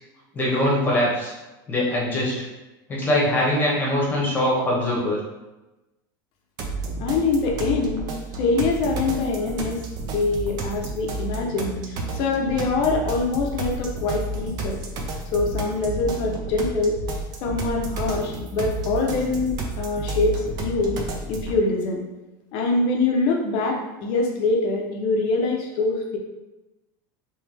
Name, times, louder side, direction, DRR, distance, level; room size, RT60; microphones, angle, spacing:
voice 1, 0.3-1.3 1.7-2.4 2.9-5.2, left 1 dB, 15° left, -4 dB, 1.1 m, -22 dB
sound 1, 6.6-21.6, right 2 dB, 40° right, 0.6 m, -31 dB
voice 2, 7.0-8.0 8.4-9.8 10.1-14.8 15.3-17.0 17.4-21.0 21.3-22.0 22.5-26.2, left 3 dB, 45° left, 1 dB, 0.6 m, -24 dB
3.3 x 3.1 x 3.2 m, 1.0 s
supercardioid pair, 155°, 11 cm